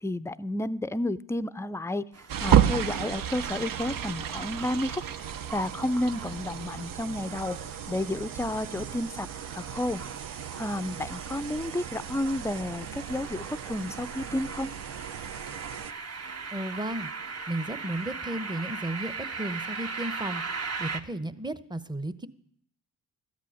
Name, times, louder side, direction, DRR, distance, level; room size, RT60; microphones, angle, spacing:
voice 1, 0.0-2.0 2.4-7.6 7.9-9.3 9.5-10.0 10.3-14.7, left 1 dB, 10° left, 15 dB, 0.5 m, -31 dB
sound 1, 2.1-21.0, right 4 dB, 40° right, 1.1 m, -40 dB
sound 2, 2.3-15.9, right 10 dB, 60° right, 0.7 m, -32 dB
voice 2, 16.5-22.3, right 1 dB, 10° right, 13 dB, 0.8 m, -34 dB
13.0 x 8.4 x 6.3 m, 0.67 s
supercardioid pair, 55°, 37 cm